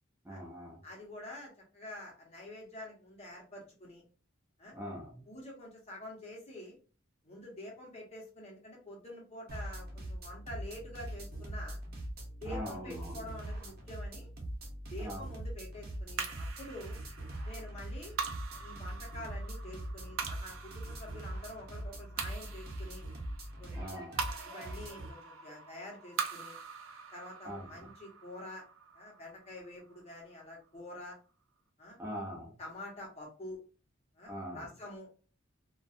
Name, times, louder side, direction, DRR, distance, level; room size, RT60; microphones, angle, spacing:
voice 1, 0.2-0.8 4.7-5.3 12.5-13.3 15.0-15.2 23.7-24.3 27.4-27.9 32.0-32.6 34.2-34.7, equal, 10° right, 0.6 m, -42 dB
voice 2, 0.8-4.0 4.6-4.8 5.3-6.8 7.2-11.8 12.4-14.3 14.9-17.0 17.4-18.2 18.6-23.0 23.6-24.1 24.4-26.6 27.1-28.6 28.9-31.2 31.8-32.0 32.6-33.6 34.1-35.1, left 1 dB, 30° left, 1.0 m, -47 dB
sound 1, 9.5-25.1, right 1 dB, 50° right, 0.8 m, -42 dB
sound 2, 16.2-30.7, right 5 dB, 75° right, 0.5 m, -43 dB
2.6 x 2.3 x 2.4 m
head